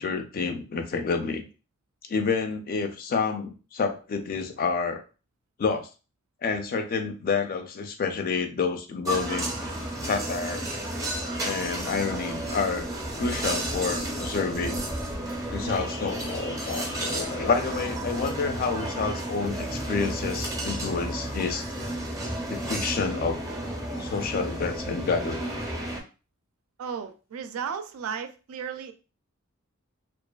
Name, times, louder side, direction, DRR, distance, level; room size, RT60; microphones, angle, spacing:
voice 1, 0.0-1.5 2.1-5.0 5.6-5.9 6.4-9.7 10.0-10.7 11.4-12.9 13.2-14.8 15.5-21.7 22.5-23.4 24.0-25.5, left 5 dB, 45° left, 0.4 m, -29 dB
sound 1, 9.1-26.0, right 1 dB, 15° right, 0.5 m, -32 dB
sound 2, 9.6-21.5, left 2 dB, 80° left, 0.8 m, -49 dB
voice 2, 26.8-28.9, right 7 dB, 75° right, 0.4 m, -34 dB
2.4 x 2.3 x 2.2 m
head